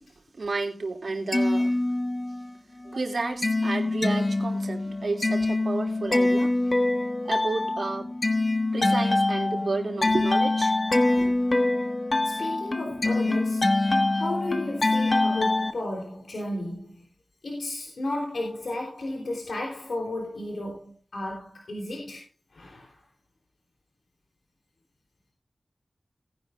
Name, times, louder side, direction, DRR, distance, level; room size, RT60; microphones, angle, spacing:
voice 1, 0.4-1.8 2.8-6.5 7.2-8.1 8.7-10.7 11.2-11.3, right 3 dB, 70° right, 2.8 m, -31 dB
sound 1, 1.1-2.5 2.9-15.7, left 2 dB, 45° left, 1.4 m, -25 dB
voice 2, 12.2-13.7 14.1-17.0 17.4-22.2 22.5-23.0, left 1 dB, 80° left, 3.6 m, -33 dB
19.0 x 10.5 x 2.6 m
cardioid pair, 45°, 0 cm